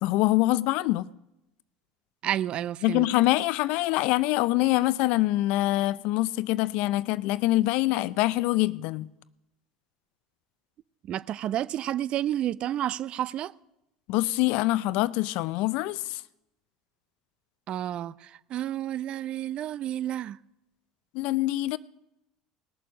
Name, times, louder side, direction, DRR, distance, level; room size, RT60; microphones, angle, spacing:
voice 1, 0.0-1.1 2.8-9.1 14.1-16.2 21.1-21.8, left 17 dB, 65° left, 0.5 m, -25 dB
voice 2, 2.2-3.1 11.1-13.5 17.7-20.4, right 12 dB, 50° right, 0.5 m, -30 dB
19.5 x 6.9 x 6.3 m
hypercardioid pair, 75°, 2 cm